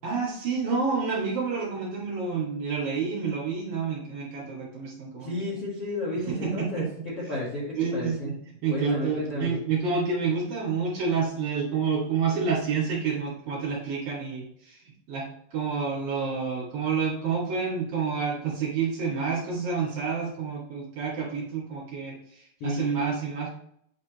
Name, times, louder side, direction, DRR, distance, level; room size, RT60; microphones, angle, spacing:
voice 1, 0.0-5.3 6.3-6.9 7.7-14.8 15.1-23.5, right 5 dB, 55° right, -5 dB, 3.2 m, -29 dB
voice 2, 5.2-8.3 8.7-9.5 22.6-23.1, equal, 55° left, -8 dB, 1.7 m, -32 dB
9.0 x 4.1 x 3.1 m, 0.68 s
omnidirectional pair, 5.6 m